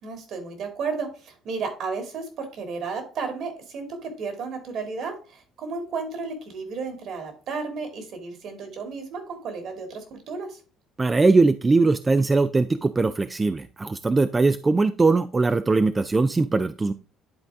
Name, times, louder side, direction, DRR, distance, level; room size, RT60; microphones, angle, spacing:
voice 1, 0.0-10.6, right 4 dB, 60° right, 6 dB, 2.3 m, -33 dB
voice 2, 11.0-16.9, right 3 dB, 20° right, 12 dB, 0.3 m, -21 dB
10.5 x 4.0 x 3.5 m, 0.34 s
cardioid pair, 120°, 0 cm